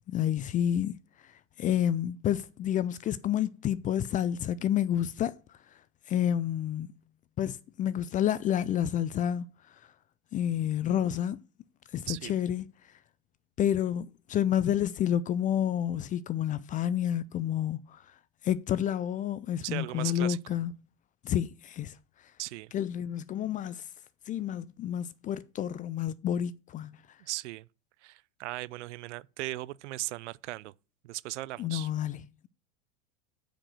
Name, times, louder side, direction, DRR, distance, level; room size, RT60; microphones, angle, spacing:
voice 1, 0.1-1.0 1.6-5.4 6.1-6.9 7.4-9.5 10.3-11.4 11.9-12.6 13.6-18.0 18.4-20.7 21.2-21.9 22.7-23.8 24.3-27.0 31.6-32.5, left 10 dB, 20° left, 0.4 m, -29 dB
voice 2, 19.6-20.4 22.4-22.7 27.2-27.7 28.0-30.7 31.0-31.9, right 18 dB, 65° right, 0.5 m, -37 dB
8.7 x 5.1 x 6.1 m
hypercardioid pair, 100°, 37 cm